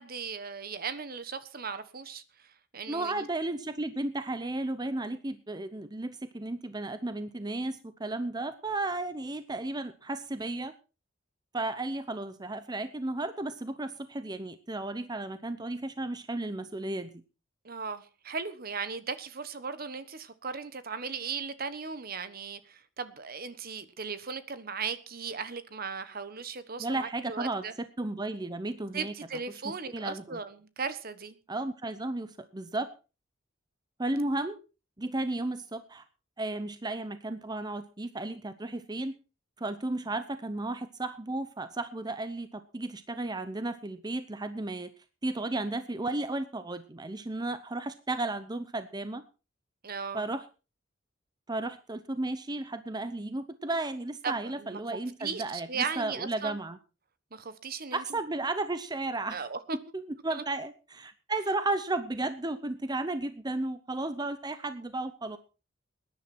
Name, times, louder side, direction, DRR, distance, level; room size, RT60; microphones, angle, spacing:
voice 1, 0.0-3.2 17.6-27.7 28.9-31.4 49.8-50.3 54.2-54.8 55.2-56.6 57.3-58.2 59.3-59.8 60.3-60.4, right 5 dB, 50° right, 1.2 m, -37 dB
voice 2, 2.9-10.7 11.5-17.1 26.8-27.6 28.0-29.1 29.9-30.4 31.5-32.9 34.0-34.6 35.0-36.0 36.4-39.1 39.6-44.9 45.2-49.2 50.1-50.4 51.5-56.8 57.9-59.4 59.9-65.4, right 2 dB, 20° right, 0.7 m, -34 dB
20.0 x 10.5 x 4.3 m
head